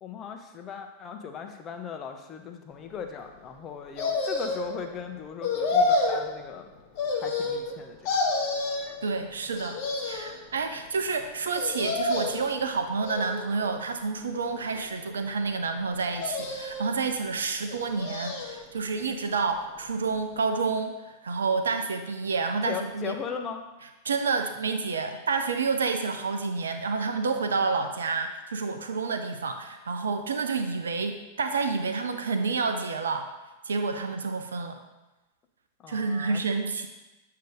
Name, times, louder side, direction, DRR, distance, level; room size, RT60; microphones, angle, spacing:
voice 1, 0.0-6.7 7.2-8.1 22.6-23.6 35.8-36.4, left 7 dB, 30° left, 4 dB, 0.7 m, -38 dB
sound 1, 4.0-4.8 5.4-6.2 7.0-7.7 8.0-8.9 9.5-10.4 11.5-12.5 13.0-13.7 14.3-15.1 16.1-16.9 17.7-18.6 19.0-19.1, left 3 dB, 45° left, 1.2 m, -29 dB
voice 2, 9.0-23.2 24.0-33.3 33.6-34.8 35.9-36.9, right 4 dB, 70° right, 7 dB, 0.5 m, -29 dB
7.7 x 2.8 x 5.1 m, 1.1 s
figure-of-eight pair, 90°, 0 cm